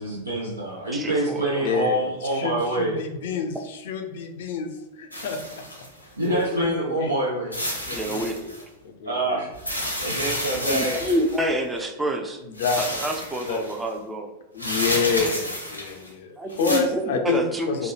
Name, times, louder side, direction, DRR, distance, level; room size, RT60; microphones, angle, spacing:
voice 1, 0.0-3.0 6.2-7.6 9.1-11.1, right 1 dB, 85° right, -5 dB, 0.5 m, -26 dB
voice 2, 0.9-1.7 7.9-8.4 10.6-12.4 12.8-14.3 16.4-17.9, right 1 dB, 10° right, 3 dB, 0.5 m, -28 dB
voice 3, 1.6-5.6 6.3-7.1 7.8-8.5 8.8-9.4 12.4-13.0 13.4-13.6 14.5-17.9, left 5 dB, 55° left, 5 dB, 0.4 m, -28 dB
sound 1, 5.1-6.4 7.5-8.6 9.5-11.5 12.5-13.8 14.6-16.1 16.5-16.8, equal, 90° left, 0.7 m, -30 dB
3.0 x 2.1 x 2.9 m, 0.96 s
figure-of-eight pair, 90°, 0 cm